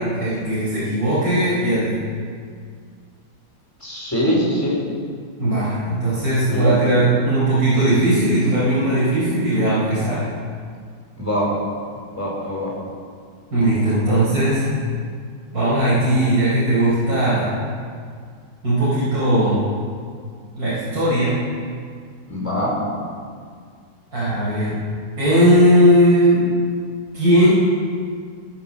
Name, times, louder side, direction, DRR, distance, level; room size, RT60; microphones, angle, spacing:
voice 1, 0.0-1.9 5.4-10.2 13.5-14.7 15.5-17.5 18.6-19.6 20.5-21.3 24.1-24.7 25.2-26.4 27.1-27.5, right 1 dB, 55° right, -11 dB, 5.2 m, -18 dB
voice 2, 3.8-4.9 6.5-6.8 11.2-11.6 12.1-12.8 13.7-13.8 22.3-22.8, equal, 10° left, -3 dB, 4.2 m, -23 dB
18.5 x 7.5 x 7.3 m, 2.1 s
omnidirectional pair, 1.9 m